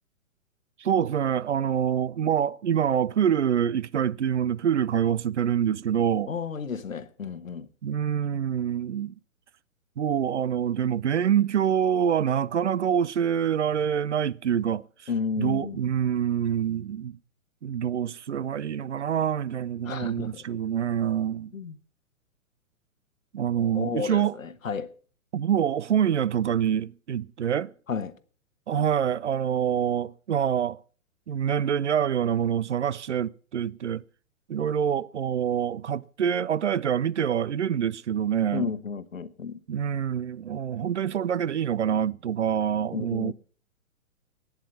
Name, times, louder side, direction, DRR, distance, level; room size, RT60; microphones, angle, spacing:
voice 1, 0.8-6.3 7.8-9.1 10.0-14.8 15.4-17.2 17.6-21.5 23.3-24.4 25.3-27.7 28.7-30.8 31.3-34.0 34.5-38.7 39.7-43.3, right 9 dB, 55° right, 0.5 m, -26 dB
voice 2, 6.3-7.7 15.1-15.8 19.8-20.4 21.5-21.8 23.7-24.9 27.9-28.1 38.5-39.6 42.9-43.3, left 6 dB, 70° left, 1.2 m, -32 dB
11.5 x 9.7 x 7.2 m
figure-of-eight pair, 120°, 42 cm